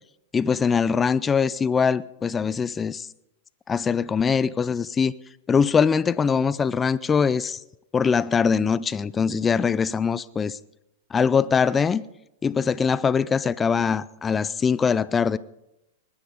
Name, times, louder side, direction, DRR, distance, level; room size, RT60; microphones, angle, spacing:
voice 1, 0.3-3.1 3.7-5.1 5.5-7.6 7.9-10.6 11.1-12.0 12.4-15.4, left 6 dB, 20° left, 0.5 m, -22 dB
20.5 x 9.8 x 5.3 m
hypercardioid pair, 110°, 0 cm